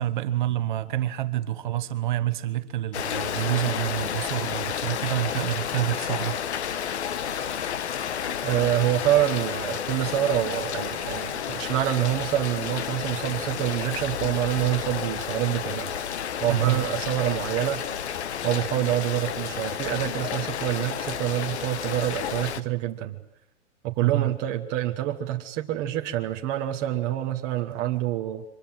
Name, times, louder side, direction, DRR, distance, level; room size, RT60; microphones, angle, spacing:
voice 1, 0.0-6.4 16.5-16.8 24.0-24.3, right 13 dB, 40° right, 1.3 m, -27 dB
Rain, 2.9-22.6, left 8 dB, 65° left, 1.4 m, -31 dB
voice 2, 8.4-15.9 16.4-17.8 18.4-23.2 23.8-28.4, right 13 dB, 20° right, 1.1 m, -26 dB
24.5 x 20.5 x 7.8 m
hypercardioid pair, 165°, 36 cm